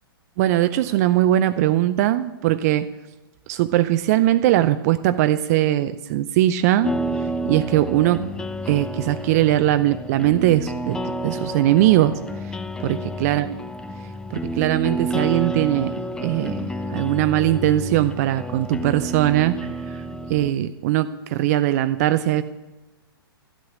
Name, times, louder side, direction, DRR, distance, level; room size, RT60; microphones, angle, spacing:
voice 1, 0.4-2.9 3.5-6.9 7.4-8.3 8.7-12.2 12.8-13.5 14.3-15.9 16.2-20.0 20.3-22.4, right 13 dB, 40° right, 12 dB, 0.5 m, -20 dB
sound 1, 6.8-20.5, right 1 dB, 5° left, 0.5 m, -30 dB
12.5 x 8.5 x 8.7 m, 1.1 s
figure-of-eight pair, 115°, 13 cm